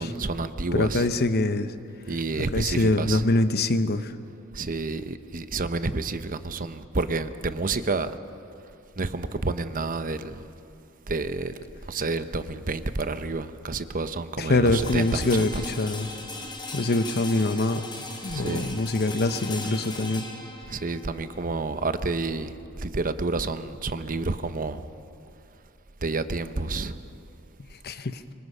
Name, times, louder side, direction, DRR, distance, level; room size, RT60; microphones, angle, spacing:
voice 1, 0.0-1.1 2.1-3.2 4.5-8.2 9.0-10.4 11.1-11.5 11.9-15.7 18.3-18.7 20.7-24.9 26.0-27.0, right 3 dB, 40° right, 11 dB, 0.9 m, -29 dB
voice 2, 0.7-1.8 2.4-4.2 14.4-16.1 16.7-17.8 18.2-20.2 27.6-28.2, left 2 dB, 50° left, 11 dB, 0.9 m, -24 dB
sound 1, 14.7-24.6, left 3 dB, 20° left, 3.1 m, -39 dB
25.5 x 24.0 x 5.6 m, 2.6 s
head